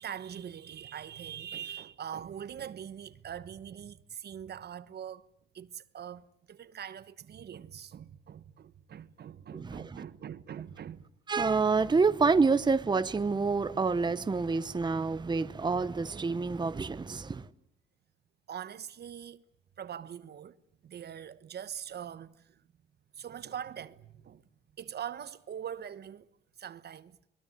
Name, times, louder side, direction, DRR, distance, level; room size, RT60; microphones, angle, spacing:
voice 1, 0.0-5.3 5.5-11.0 18.5-19.4 19.8-20.6 20.8-22.6 23.2-24.4 24.8-26.3 26.6-27.2, right 9 dB, 55° right, 1.1 m, -42 dB
voice 2, 9.5-10.0 11.3-17.5, right 4 dB, 20° right, 0.9 m, -28 dB
23.0 x 21.5 x 9.4 m
cardioid pair, 90°, 20 cm